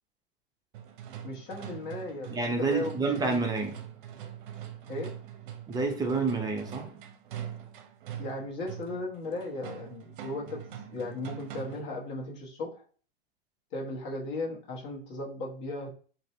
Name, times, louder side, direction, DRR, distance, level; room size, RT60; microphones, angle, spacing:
sound 1, 0.7-12.0, right 10 dB, 60° right, 0.7 m, -43 dB
voice 1, 1.2-3.4 4.9-5.1 8.2-10.6 10.9-12.8 13.7-15.9, left 2 dB, 40° left, 1.2 m, -36 dB
voice 2, 2.3-3.8 5.7-6.9, right 4 dB, 15° right, 0.6 m, -28 dB
2.7 x 2.6 x 3.2 m
hypercardioid pair, 115°, 29 cm